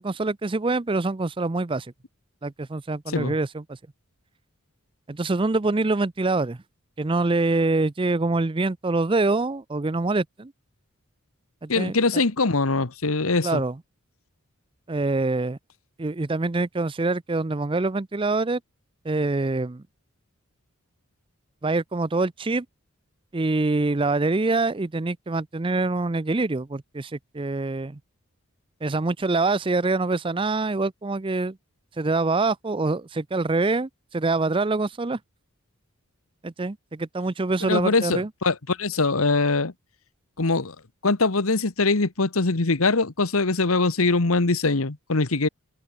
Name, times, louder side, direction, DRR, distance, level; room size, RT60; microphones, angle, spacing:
voice 1, 0.0-1.9 2.4-3.8 5.1-6.6 7.0-10.5 11.6-12.2 13.4-13.8 14.9-15.6 16.0-18.6 19.0-19.8 21.6-22.7 23.3-28.0 28.8-31.6 32.0-35.2 36.4-38.3, right 3 dB, 25° right, 0.5 m, -25 dB
voice 2, 11.7-13.6 37.7-39.7 40.4-40.7 41.0-45.5, left 3 dB, 80° left, 1.4 m, -22 dB
head